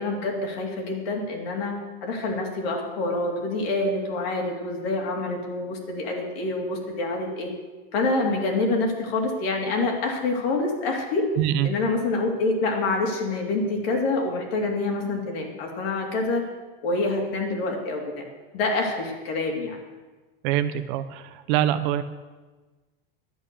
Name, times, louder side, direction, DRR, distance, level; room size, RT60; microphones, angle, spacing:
voice 1, 0.0-7.5 7.9-11.2 11.6-16.4 16.8-18.2 18.5-19.8, left 2 dB, 75° left, 1 dB, 3.0 m, -26 dB
voice 2, 11.4-11.7 20.4-22.0, right 12 dB, 55° right, 11 dB, 0.8 m, -24 dB
11.0 x 8.7 x 6.9 m, 1.3 s
supercardioid pair, 150°, 30 cm